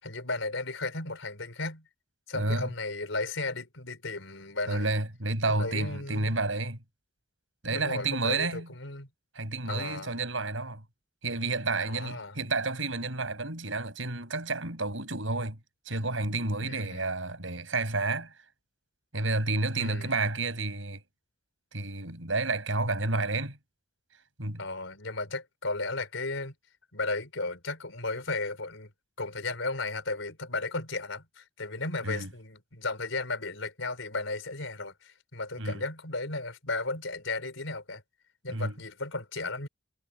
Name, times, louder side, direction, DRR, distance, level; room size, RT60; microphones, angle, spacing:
voice 1, 0.0-1.8 2.3-4.9 5.5-6.4 7.7-9.1 9.6-10.1 11.9-12.4 16.6-17.1 19.8-20.1 24.6-26.5 26.9-28.9 29.2-38.0 38.4-39.7, left 3 dB, 75° left, 4.8 m, -35 dB
voice 2, 2.3-2.7 4.7-6.8 7.6-8.7 9.3-10.8 11.2-15.6 15.9-18.3 19.1-21.0 21.7-23.6 24.4-24.6 32.0-32.3 35.6-35.8 38.5-38.7, right 3 dB, 75° right, 7.3 m, -30 dB
head